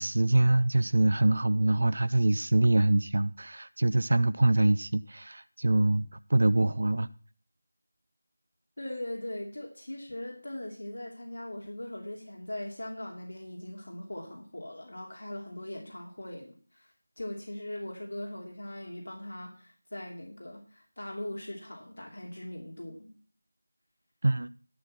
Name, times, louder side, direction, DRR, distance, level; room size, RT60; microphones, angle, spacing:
voice 1, 0.0-7.1 24.2-24.5, right 2 dB, 65° right, 0.4 m, -24 dB
voice 2, 8.8-23.1, left 1 dB, 85° left, 2.9 m, -40 dB
12.0 x 6.3 x 5.7 m
figure-of-eight pair, 175°, 0 cm